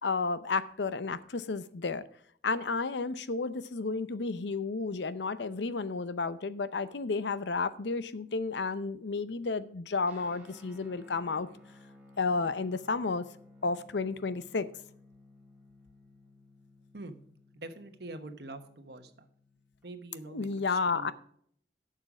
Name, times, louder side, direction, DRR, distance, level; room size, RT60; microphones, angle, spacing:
voice 1, 0.0-2.0 2.4-11.5 12.2-13.3 13.6-14.7 20.3-21.1, left 4 dB, 90° left, 0.7 m, -32 dB
Guitar, 10.0-19.9, left 2 dB, 10° right, 1.9 m, -57 dB
voice 2, 17.5-19.3 19.8-21.1, right 2 dB, 70° right, 1.1 m, -45 dB
11.5 x 6.6 x 4.9 m
head